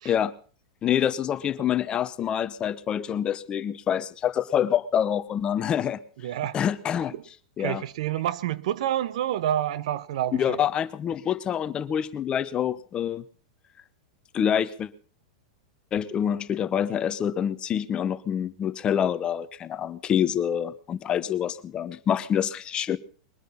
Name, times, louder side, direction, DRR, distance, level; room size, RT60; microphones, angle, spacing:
voice 1, 0.8-6.0 6.5-7.1 7.6-7.8 10.3-13.2 14.3-14.9 15.9-23.0, left 9 dB, 25° left, 0.8 m, -26 dB
voice 2, 6.2-6.6 7.6-10.6, right 11 dB, 70° right, 0.8 m, -28 dB
21.5 x 10.0 x 5.5 m
hypercardioid pair, 130°, 4 cm